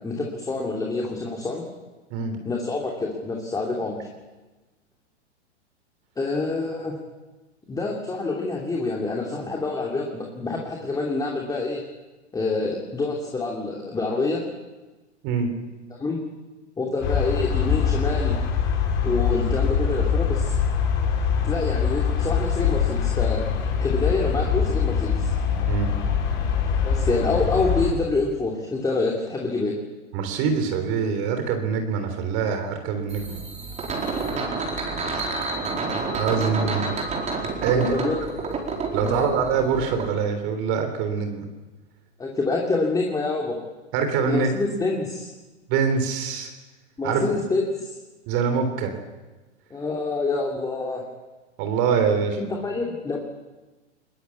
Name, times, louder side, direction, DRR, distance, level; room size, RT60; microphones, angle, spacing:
voice 1, 0.0-1.6 2.4-4.0 6.2-7.0 7.7-11.8 12.3-14.4 15.9-16.2 16.8-18.4 19.0-20.6 21.4-23.4 23.8-25.3 26.8-29.8 37.7-38.2 39.0-39.3 42.2-43.6 44.3-45.3 47.0-47.9 49.7-51.0 52.3-53.2, left 3 dB, 10° left, -1 dB, 2.8 m, -27 dB
sound 1, 17.0-27.9, left 7 dB, 35° left, 6.2 m, -23 dB
voice 2, 30.1-33.4 36.1-36.9 37.6-38.0 38.9-41.5 43.9-44.5 45.7-46.5 47.0-47.2 48.3-48.9 51.6-52.4, right 6 dB, 40° right, 6 dB, 3.5 m, -24 dB
sound 2, 33.1-40.1, right 3 dB, 20° right, 4.6 m, -29 dB
21.5 x 20.5 x 8.5 m, 1.2 s
hypercardioid pair, 130°, 36 cm